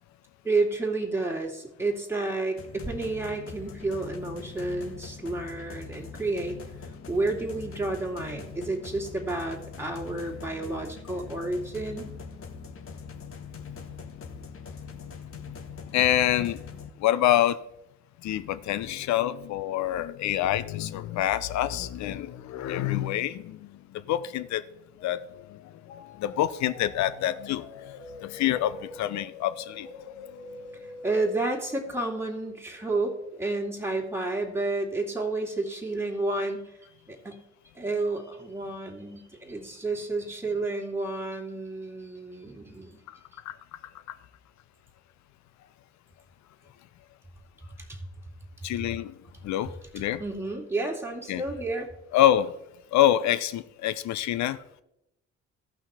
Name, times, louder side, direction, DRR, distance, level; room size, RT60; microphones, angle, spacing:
voice 1, 0.4-6.6 7.1-12.1 31.0-36.7 37.1-37.4 37.8-43.0 47.9-48.0 50.2-51.9, right 2 dB, 5° right, 2.3 m, -30 dB
sound 1, 2.6-16.9, left 5 dB, 40° left, 1.2 m, -42 dB
voice 2, 15.9-16.6 17.0-17.6 18.2-24.6 25.0-25.6 25.9-27.9 28.2-29.9 43.1-43.2 43.5-43.6 44.1-44.2 48.6-49.1 49.4-50.2 51.3-51.4 52.1-52.6 52.9-54.6, left 12 dB, 55° left, 0.7 m, -26 dB
sound 2, 25.0-31.6, left 3 dB, 80° left, 1.0 m, -45 dB
14.0 x 5.8 x 4.2 m
hypercardioid pair, 55°, 33 cm